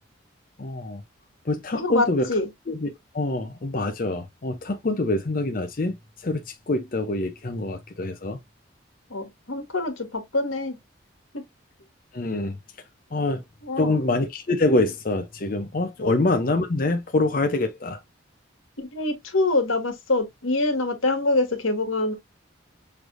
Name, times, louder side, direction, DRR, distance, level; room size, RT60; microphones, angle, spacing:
voice 1, 0.6-1.0 1.4-2.3 2.7-8.4 12.1-12.6 13.1-13.4 13.8-18.0, left 2 dB, 45° left, 0.6 m, -25 dB
voice 2, 1.7-2.5 9.1-10.8 11.3-11.4 13.6-14.0 16.0-16.1 18.8-22.1, left 2 dB, 85° left, 1.5 m, -25 dB
6.2 x 3.4 x 2.5 m
head